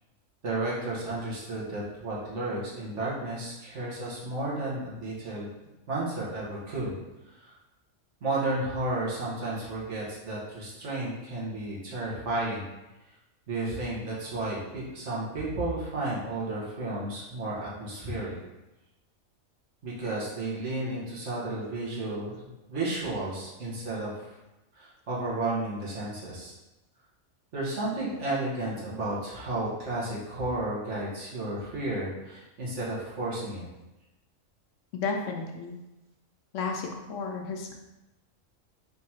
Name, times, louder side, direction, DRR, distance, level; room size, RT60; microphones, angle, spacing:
voice 1, 0.4-5.5 5.9-6.9 7.3-7.5 8.2-12.6 13.5-18.4 19.8-24.4 24.7-26.5 27.5-33.7, right 2 dB, 60° right, -6 dB, 1.4 m, -32 dB
voice 2, 35.0-35.8 36.5-37.7, left 4 dB, 70° left, 2 dB, 0.9 m, -32 dB
3.6 x 2.8 x 4.3 m, 1.0 s
omnidirectional pair, 1.4 m